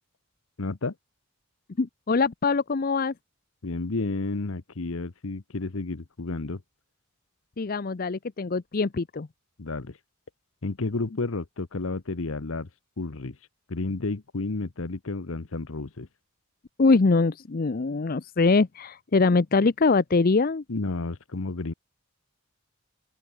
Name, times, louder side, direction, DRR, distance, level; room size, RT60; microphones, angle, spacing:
voice 1, 0.6-0.9 3.6-6.6 9.6-10.0 10.6-12.7 13.0-13.4 13.7-16.1 20.7-21.7, left 3 dB, 75° left, 1.0 m, -31 dB
voice 2, 1.8-3.1 7.6-9.3 16.8-20.6, left 3 dB, 45° left, 0.6 m, -23 dB
open air
head